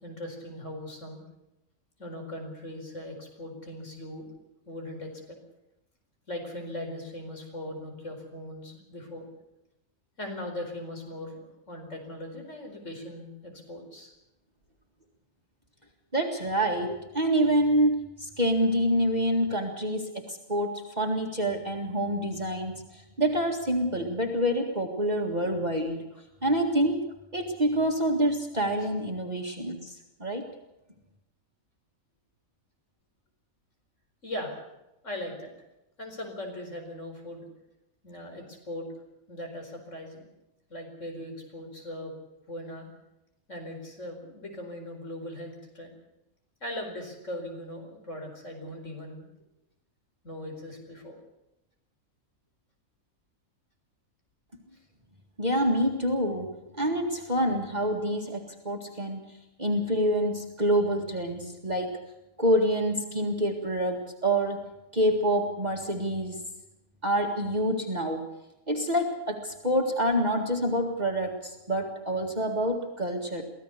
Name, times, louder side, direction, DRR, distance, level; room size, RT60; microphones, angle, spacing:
voice 1, 0.0-1.2 2.0-4.3 4.7-5.4 6.3-9.3 10.2-14.1 34.2-34.6 35.0-35.5 36.0-37.5 38.0-38.9 39.3-40.3 40.7-42.1 42.5-42.9 43.5-46.0 46.6-49.3 50.2-51.2, left 1 dB, 55° left, 3 dB, 5.0 m, -39 dB
voice 2, 16.1-26.0 26.4-27.0 27.3-30.5 55.4-62.0 62.4-64.6 64.9-66.4 67.0-68.3 68.7-73.4, equal, 30° right, 2 dB, 2.1 m, -27 dB
24.0 x 16.5 x 6.8 m, 0.91 s
omnidirectional pair, 1.5 m